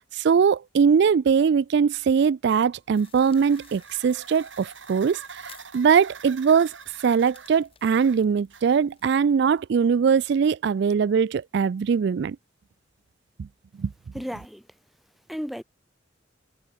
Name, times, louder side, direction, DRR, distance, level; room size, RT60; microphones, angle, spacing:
voice 1, 0.1-6.7 7.0-12.4 13.4-13.5 13.8-13.9, right 6 dB, 60° right, 0.3 m, -21 dB
sound 1, 2.9-9.1, right 5 dB, 80° right, 5.7 m, -45 dB
sound 2, 3.0-9.6, left 8 dB, 30° left, 7.2 m, -56 dB
voice 2, 14.1-14.7 15.3-15.6, equal, ahead, 0.6 m, -33 dB
head